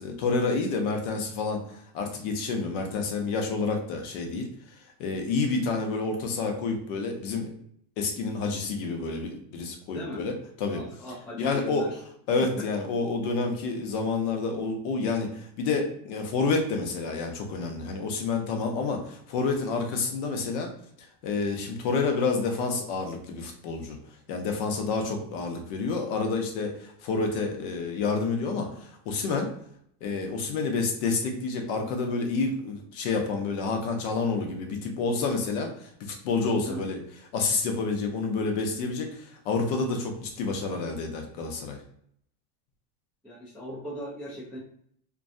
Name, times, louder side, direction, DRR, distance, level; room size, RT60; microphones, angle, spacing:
voice 1, 0.0-4.5 5.0-7.5 8.0-10.8 11.4-11.9 12.3-20.7 21.2-24.0 24.3-29.5 30.0-37.0 37.3-41.8, left 4 dB, 50° left, 3 dB, 0.6 m, -29 dB
voice 2, 10.7-11.9 36.6-36.9 43.2-44.6, equal, ahead, -11 dB, 0.3 m, -38 dB
2.5 x 2.3 x 2.5 m, 0.67 s
supercardioid pair, 150°, 47 cm